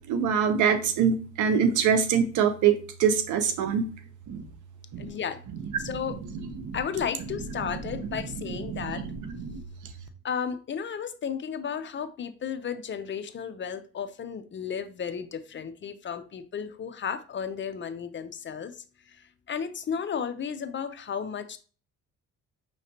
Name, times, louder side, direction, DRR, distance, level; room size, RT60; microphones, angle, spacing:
voice 1, 0.1-3.9 4.3-4.4 4.9-5.1 5.5-6.8 7.3-9.9, right 7 dB, 80° right, 9 dB, 0.8 m, -26 dB
voice 2, 5.0-5.4 5.8-6.2 6.7-9.1 10.2-18.8 19.1-19.2 19.5-21.6, left 7 dB, 40° left, 10 dB, 0.5 m, -33 dB
5.7 x 3.1 x 2.8 m, 0.37 s
cardioid pair, 90°, 30 cm